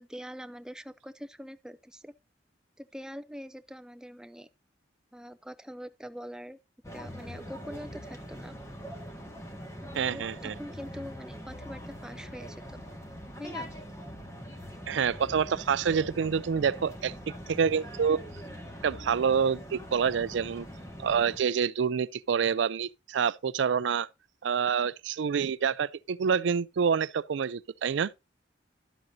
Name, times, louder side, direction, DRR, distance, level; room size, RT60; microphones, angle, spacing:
voice 1, 0.0-2.1 2.8-4.5 5.1-6.6 6.9-8.6 9.8-12.8 13.4-13.7, equal, 5° right, 0.4 m, -44 dB
sound 1, 6.8-21.4, equal, 15° left, 1.7 m, -43 dB
voice 2, 9.9-10.5 14.9-17.2 17.5-18.2 18.8-20.7 21.0-24.1 24.4-28.1, right 6 dB, 80° right, 0.4 m, -27 dB
12.0 x 7.7 x 2.6 m
head